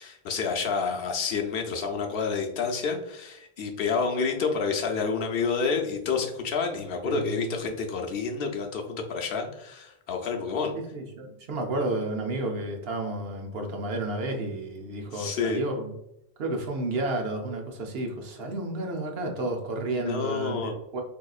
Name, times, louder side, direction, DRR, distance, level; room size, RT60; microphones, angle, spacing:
voice 1, 0.0-10.7 15.1-15.6 20.0-20.7, left 5 dB, 70° left, 2 dB, 0.8 m, -29 dB
voice 2, 7.0-7.6 10.9-15.9 16.4-21.0, right 2 dB, 75° right, 2 dB, 0.9 m, -31 dB
3.7 x 2.8 x 2.3 m, 0.83 s
omnidirectional pair, 1.0 m